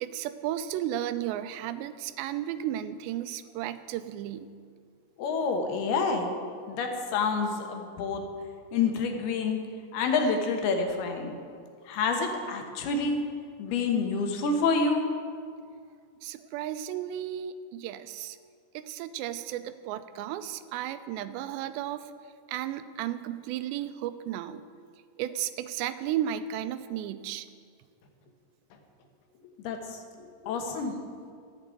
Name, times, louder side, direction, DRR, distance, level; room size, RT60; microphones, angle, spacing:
voice 1, 0.0-4.5 16.2-18.4 18.7-22.0 22.5-24.6 25.2-27.5, right 11 dB, 90° right, 12 dB, 2.8 m, -34 dB
voice 2, 5.2-6.3 6.7-8.2 8.7-9.6 9.9-11.4 11.8-13.2 13.6-15.0 29.6-30.9, left 4 dB, 70° left, 4 dB, 3.0 m, -28 dB
13.5 x 7.8 x 9.0 m, 2.1 s
omnidirectional pair, 4.9 m